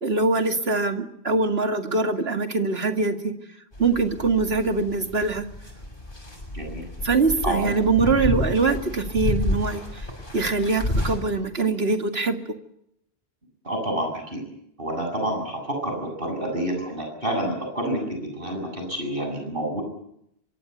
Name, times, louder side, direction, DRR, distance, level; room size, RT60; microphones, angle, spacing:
voice 1, 0.0-3.3 3.8-5.5 7.0-10.1 10.3-12.4, right 3 dB, 75° right, 6 dB, 2.5 m, -23 dB
sound 1, 3.7-11.2, left 1 dB, 55° left, 7.2 m, -30 dB
voice 2, 6.5-6.8 7.4-7.7 8.1-8.2 13.6-14.4 14.8-19.8, right 1 dB, 60° right, 3 dB, 8.2 m, -28 dB
25.0 x 24.0 x 8.1 m, 0.75 s
omnidirectional pair, 1.0 m